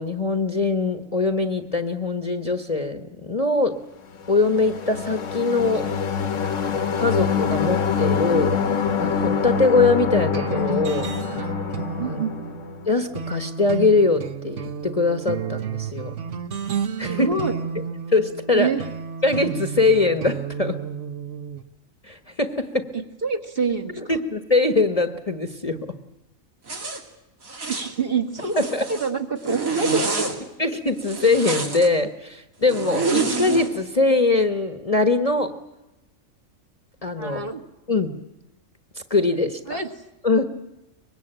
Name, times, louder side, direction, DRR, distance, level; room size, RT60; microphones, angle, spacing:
voice 1, 0.0-3.8 4.3-5.8 7.0-8.5 9.0-11.5 12.0-12.2 12.9-16.1 17.0-17.3 18.1-18.7 19.2-20.8 22.0-22.9 24.0-25.8 28.6-28.8 30.6-35.5 37.0-37.4 37.9-38.1 39.1-39.6 40.2-40.4, left 3 dB, 30° left, 7 dB, 1.2 m, -22 dB
sound 1, 4.2-12.9, left 6 dB, 65° left, 1.5 m, -25 dB
sound 2, 10.3-21.6, right 7 dB, 60° right, 1.4 m, -32 dB
voice 2, 12.0-12.3 17.1-17.6 18.5-18.8 22.9-24.2 27.7-30.3 37.2-37.6 39.7-39.9, right 5 dB, 40° right, 4 dB, 1.9 m, -27 dB
Zipper (clothing), 26.7-27.0 27.4-27.9 28.4-29.1 29.4-30.3 31.0-31.9 32.7-33.7, right 4 dB, 80° right, 3.0 m, -26 dB
24.0 x 21.0 x 9.0 m, 0.95 s
omnidirectional pair, 1.4 m